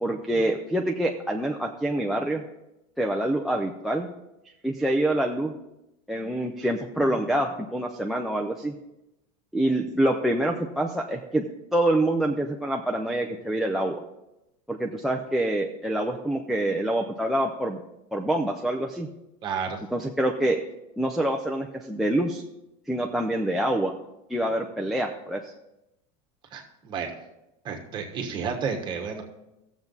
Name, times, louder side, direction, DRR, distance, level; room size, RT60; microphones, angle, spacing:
voice 1, 0.0-2.4 3.0-4.1 4.6-5.5 6.1-8.7 9.5-11.4 11.7-14.0 14.7-17.8 18.1-19.1 19.9-20.6 21.0-22.4 22.9-23.9 24.3-25.4, right 1 dB, ahead, 3 dB, 0.4 m, -26 dB
voice 2, 19.4-19.8 26.5-27.1 27.6-29.2, right 6 dB, 25° right, 3 dB, 1.3 m, -31 dB
15.5 x 7.2 x 4.0 m, 0.92 s
supercardioid pair, 170°, 17 cm